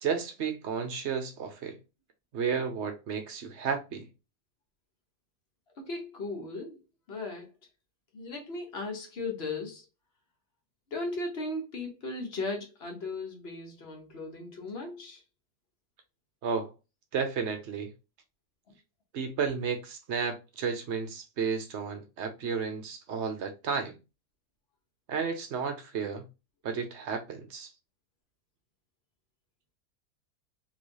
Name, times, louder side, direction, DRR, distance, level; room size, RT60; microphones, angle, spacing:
voice 1, 0.0-1.8 2.3-4.1 16.4-16.7 17.1-17.9 19.1-24.0 25.1-26.3 26.6-27.7, right 6 dB, 60° right, 0.9 m, -32 dB
voice 2, 5.8-6.8 7.1-7.5 8.1-9.8 10.9-15.2, left 2 dB, 45° left, 1.2 m, -37 dB
3.2 x 3.0 x 2.6 m
omnidirectional pair, 1.6 m